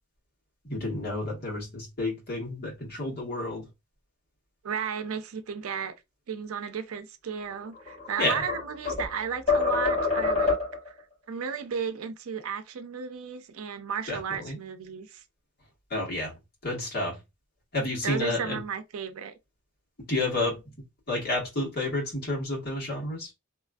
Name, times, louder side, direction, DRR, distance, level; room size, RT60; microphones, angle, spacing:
voice 1, 0.6-3.7 8.2-8.3 14.1-14.6 15.9-16.3 16.6-17.2 17.7-18.6 20.1-20.6 21.1-23.3, left 2 dB, 50° left, 1.6 m, -30 dB
voice 2, 4.6-5.9 6.3-10.6 10.9-11.0 11.3-15.2 18.0-19.4, right 6 dB, 85° right, 0.5 m, -34 dB
sound 1, 7.7-9.1 9.5-10.9, left 4 dB, 30° left, 1.7 m, -26 dB
3.0 x 2.5 x 2.3 m
head